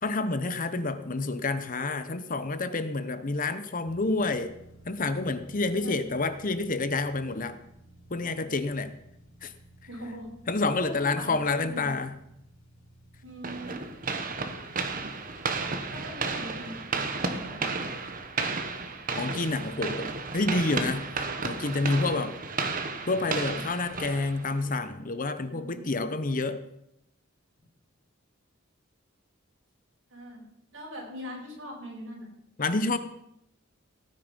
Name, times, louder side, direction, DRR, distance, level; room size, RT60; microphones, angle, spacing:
voice 1, 0.0-4.5 4.9-7.6 8.1-8.9 9.4-9.5 10.5-12.1 19.2-21.1 21.4-22.4 23.1-26.6 32.6-33.0, left 3 dB, 40° left, 11 dB, 0.9 m, -28 dB
sound 1, 3.8-18.4, right 1 dB, 70° left, 5.5 m, -55 dB
voice 2, 5.6-6.1 9.9-10.3 10.7-11.9 13.2-13.8 15.9-16.7 17.2-17.6 25.4-25.8 30.1-30.4 30.7-32.3, equal, 70° right, -1 dB, 5.6 m, -41 dB
sound 2, 13.4-24.7, right 4 dB, 45° right, 1.4 m, -33 dB
17.0 x 9.5 x 5.3 m, 0.80 s
head